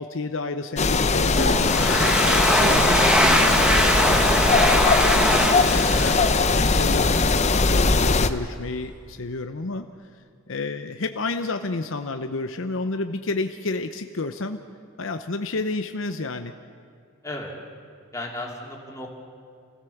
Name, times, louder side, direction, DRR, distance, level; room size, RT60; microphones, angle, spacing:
voice 1, 0.0-7.2 7.5-10.1 10.5-14.6 15.0-16.5, left 3 dB, 65° left, 7 dB, 0.8 m, -31 dB
sound 1, 0.8-8.3, left 3 dB, 35° left, 0.7 m, -20 dB
Domestic sounds home sounds, 1.4-7.0, equal, 5° right, 1.2 m, -22 dB
voice 2, 18.1-19.1, left 1 dB, 15° left, -2 dB, 3.0 m, -35 dB
28.5 x 16.0 x 7.1 m, 2.2 s
head